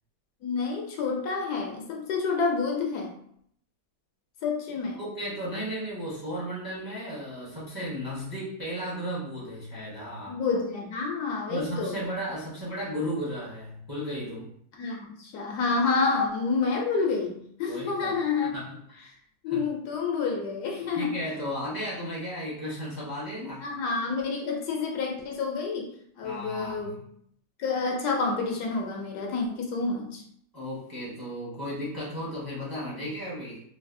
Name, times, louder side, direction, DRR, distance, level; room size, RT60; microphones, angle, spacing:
voice 1, 0.4-3.1 4.4-5.0 10.3-12.0 14.7-18.6 19.4-21.1 23.6-25.9 26.2-27.0 27.6-30.2, left 4 dB, 75° left, 1 dB, 1.1 m, -28 dB
voice 2, 5.0-10.4 11.5-14.5 17.7-18.1 18.5-19.1 19.5-19.6 20.9-23.7 26.2-26.8 30.5-33.6, equal, 20° right, -8 dB, 0.7 m, -34 dB
3.3 x 2.5 x 2.5 m, 0.67 s
omnidirectional pair, 1.8 m